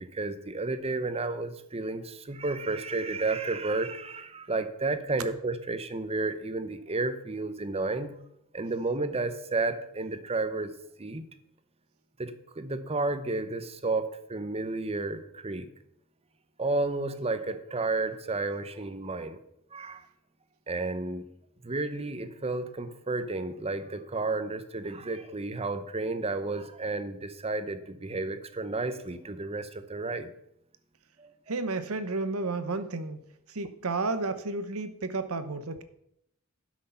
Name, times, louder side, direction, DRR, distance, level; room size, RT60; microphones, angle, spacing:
voice 1, 0.0-8.2 8.5-10.7 11.0-11.2 12.2-15.7 16.6-19.4 19.7-20.1 20.7-21.3 21.6-30.3 31.2-31.3, right 3 dB, 30° right, 11 dB, 0.8 m, -32 dB
voice 2, 31.5-33.2 33.5-35.8, right 3 dB, 80° right, 12 dB, 1.0 m, -32 dB
11.5 x 6.3 x 5.6 m, 0.76 s
head